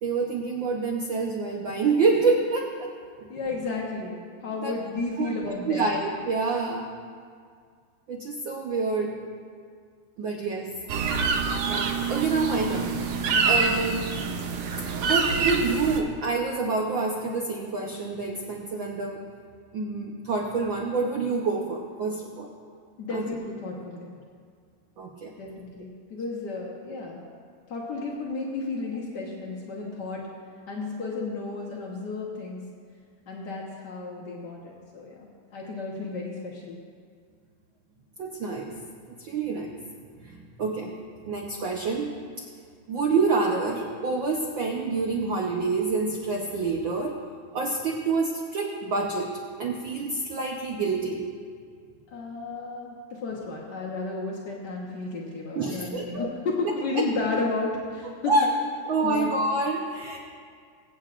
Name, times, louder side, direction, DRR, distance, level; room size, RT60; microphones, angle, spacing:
voice 1, 0.0-2.9 4.6-4.7 5.2-5.3 5.6-6.9 8.1-9.2 10.2-10.7 11.7-13.0 13.4-14.1 15.0-19.2 19.7-22.5 23.1-23.3 25.0-25.3 38.2-38.8 39.2-39.7 40.2-40.9 41.3-42.5 42.9-47.2 47.5-49.3 49.6-51.2 55.5-56.3 57.0-57.1 58.3-58.5 58.9-60.2, right 3 dB, 90° right, 0 dB, 1.0 m, -27 dB
voice 2, 3.3-6.0 13.3-13.4 23.0-24.1 25.4-27.2 27.7-30.3 30.7-32.7 33.3-36.8 52.1-58.3 59.0-59.3, left 3 dB, 75° left, -2 dB, 0.9 m, -33 dB
sound 1, 10.9-16.0, right 5 dB, 70° right, 1.6 m, -26 dB
23.0 x 8.7 x 2.5 m, 2.1 s
omnidirectional pair, 3.4 m